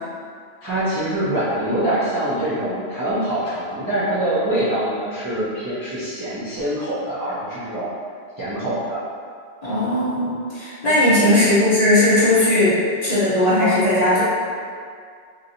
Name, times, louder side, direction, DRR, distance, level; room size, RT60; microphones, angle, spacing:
voice 1, 0.6-8.0 8.4-9.0 11.2-11.5, right 1 dB, 25° right, -12 dB, 0.4 m, -24 dB
voice 2, 9.6-12.8 13.0-14.2, left 1 dB, 40° left, -11 dB, 0.7 m, -17 dB
3.0 x 2.6 x 2.6 m, 2.2 s
omnidirectional pair, 1.3 m